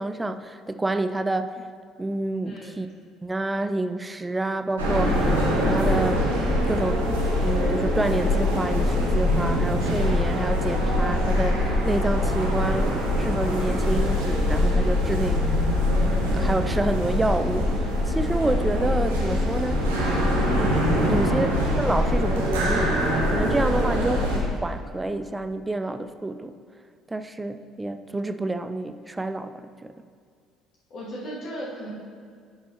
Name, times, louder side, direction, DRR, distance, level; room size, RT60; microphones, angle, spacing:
voice 1, 0.0-1.7 2.0-2.9 3.2-6.2 6.7-15.6 16.3-19.8 21.1-24.3 24.6-26.5 27.1-29.9, right 2 dB, 15° right, 10 dB, 0.4 m, -28 dB
voice 2, 2.4-2.8 21.2-21.5 30.9-31.9, equal, 50° left, -8 dB, 2.2 m, -36 dB
sound 1, 4.8-24.4, left 1 dB, 75° right, 1.2 m, -23 dB
10.5 x 6.8 x 2.9 m, 2.2 s
figure-of-eight pair, 55°, 0 cm